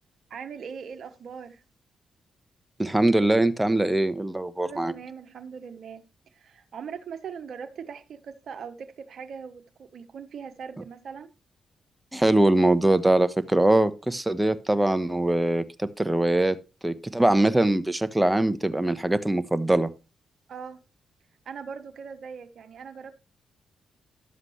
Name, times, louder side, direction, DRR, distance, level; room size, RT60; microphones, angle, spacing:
voice 1, 0.3-1.6 4.6-11.3 20.5-20.8 21.4-23.2, right 6 dB, 65° right, 1.2 m, -40 dB
voice 2, 2.8-4.9 12.1-16.6 16.8-19.9, right 1 dB, 10° right, 1.1 m, -22 dB
11.5 x 7.3 x 3.2 m
hypercardioid pair, 45°, 0 cm